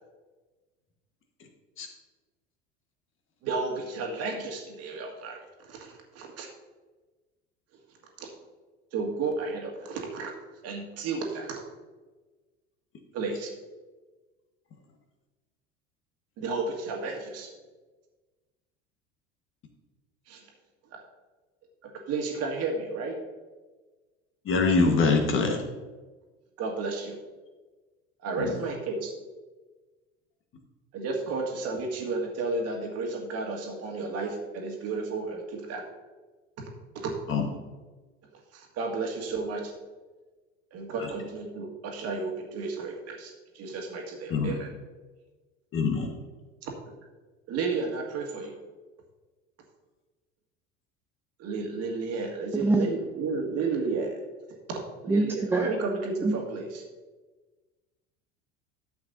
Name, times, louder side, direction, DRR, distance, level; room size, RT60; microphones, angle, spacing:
voice 1, 3.4-5.4 5.7-6.5 8.2-8.3 8.9-10.3 10.6-11.6 13.1-13.5 16.4-17.5 20.3-20.4 21.8-23.2 26.6-27.2 28.2-29.1 30.9-35.8 36.9-37.1 38.5-39.7 40.7-44.7 46.6-46.7 47.5-48.6 51.4-54.2 54.7-56.8, right 3 dB, 45° right, 1 dB, 1.9 m, -32 dB
voice 2, 24.4-25.6 28.4-28.5 37.3-37.4 41.0-41.1 44.3-44.5 45.7-46.1, left 4 dB, 35° left, 3 dB, 1.6 m, -24 dB
voice 3, 55.1-55.7 56.2-56.3, right 2 dB, 5° right, 4 dB, 0.4 m, -24 dB
12.5 x 7.8 x 2.7 m, 1.3 s
figure-of-eight pair, 70°, 36 cm